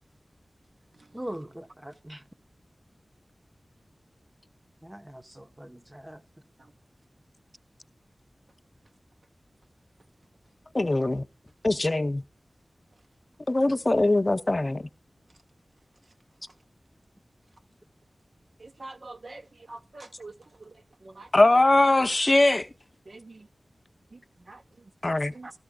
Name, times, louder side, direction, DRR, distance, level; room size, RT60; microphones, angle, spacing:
voice 1, 1.1-2.2 4.8-6.2, right 1 dB, 20° right, 0.8 m, -41 dB
voice 2, 10.7-11.2 11.6-12.2 13.5-14.8 21.3-22.7 25.0-25.3, left 2 dB, 40° left, 0.7 m, -21 dB
voice 3, 18.6-21.3 23.1-23.5 24.1-25.5, right 2 dB, 70° right, 0.9 m, -46 dB
13.5 x 13.0 x 2.2 m
wide cardioid pair, 55°, 0 cm